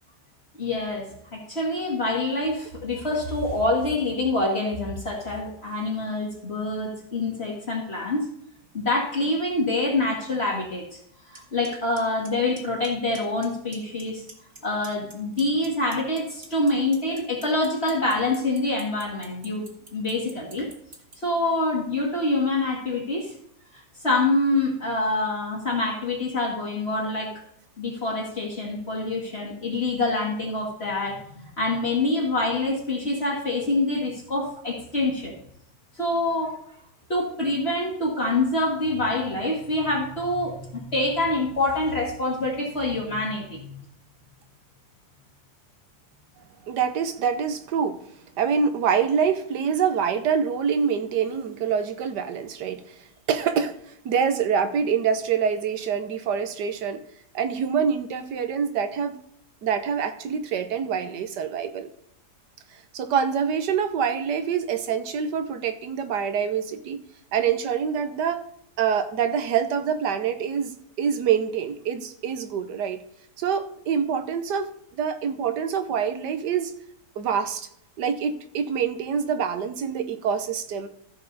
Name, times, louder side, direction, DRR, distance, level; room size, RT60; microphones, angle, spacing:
voice 1, 0.6-8.2 8.7-11.0 11.3-14.2 14.6-20.7 21.2-23.3 24.0-27.3 27.8-35.3 36.0-36.6 37.1-43.8, left 2 dB, 40° left, -2 dB, 2.1 m, -26 dB
Clock, 11.3-11.4 11.6-12.0 12.2-12.9 13.1-13.5 13.7-14.6 14.8-21.1, right 3 dB, 40° right, 2.1 m, -44 dB
voice 2, 46.6-48.0 48.4-57.0 57.3-59.2 59.6-61.9 62.9-67.0 67.3-68.4 68.8-73.0 73.4-76.7 77.2-77.7 78.0-80.9, right 7 dB, 85° right, 10 dB, 1.6 m, -25 dB
14.5 x 6.8 x 4.0 m, 0.73 s
omnidirectional pair, 1.7 m